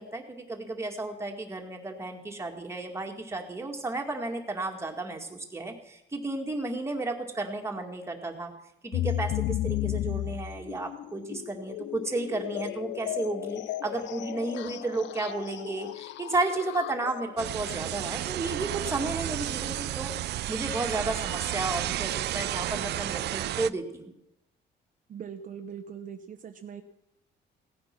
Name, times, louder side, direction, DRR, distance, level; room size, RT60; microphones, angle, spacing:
voice 1, 0.0-8.5 8.8-20.1 20.5-24.1, right 2 dB, 15° right, 2 dB, 2.0 m, -33 dB
sound 1, 8.9-17.5, left 14 dB, 80° left, 0.4 m, -34 dB
sound 2, 17.4-23.7, right 14 dB, 65° right, 0.4 m, -32 dB
voice 2, 25.1-26.8, right 7 dB, 45° right, 6 dB, 0.9 m, -41 dB
16.5 x 9.5 x 6.0 m, 0.83 s
cardioid pair, 135°, 19 cm